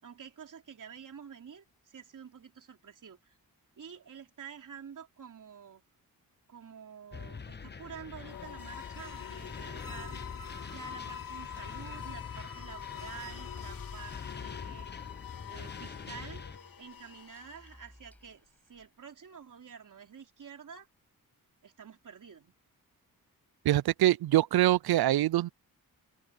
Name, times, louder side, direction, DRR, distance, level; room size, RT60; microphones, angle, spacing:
voice 1, 0.0-3.4 3.8-5.8 6.5-10.2 10.7-15.1 15.5-16.4 16.8-20.9 21.6-22.5, right 7 dB, 60° right, 3.3 m, -49 dB
sound 1, 7.1-16.6, left 5 dB, 30° left, 0.8 m, -44 dB
sound 2, 8.1-18.0, left 9 dB, 65° left, 3.5 m, -45 dB
sound 3, 10.9-18.9, equal, 5° left, 6.9 m, -60 dB
voice 2, 23.7-25.5, right 14 dB, 85° right, 0.5 m, -24 dB
open air
cardioid pair, 90°, 36 cm